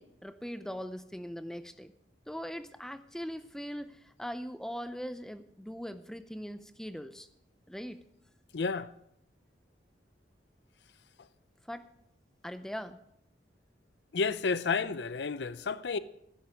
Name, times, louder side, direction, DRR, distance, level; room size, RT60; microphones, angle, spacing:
voice 1, 0.0-1.9 2.3-7.3 7.7-8.0 11.7-11.8 12.4-13.0, equal, 5° left, 0.5 m, -40 dB
voice 2, 8.5-8.9 14.1-16.0, left 4 dB, 75° left, 0.5 m, -31 dB
13.0 x 10.5 x 5.0 m
head